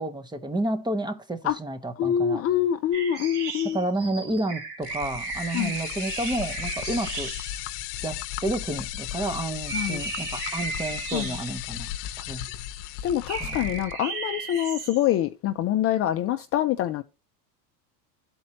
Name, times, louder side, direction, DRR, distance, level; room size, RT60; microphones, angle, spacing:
voice 1, 0.0-2.4 3.6-7.3 8.0-11.9 12.3-12.5 13.4-13.8, right 1 dB, 10° right, 0.6 m, -30 dB
voice 2, 2.0-3.8 5.5-5.7 9.7-10.0 11.1-11.2 13.0-17.0, left 11 dB, 35° left, 0.4 m, -25 dB
sound 1, 2.9-7.6 9.1-9.3 9.7-11.8 13.3-15.1, right 4 dB, 80° right, 2.4 m, -35 dB
sound 2, 4.8-13.9, left 12 dB, 65° left, 0.8 m, -35 dB
12.0 x 4.4 x 2.8 m
supercardioid pair, 120°, 48 cm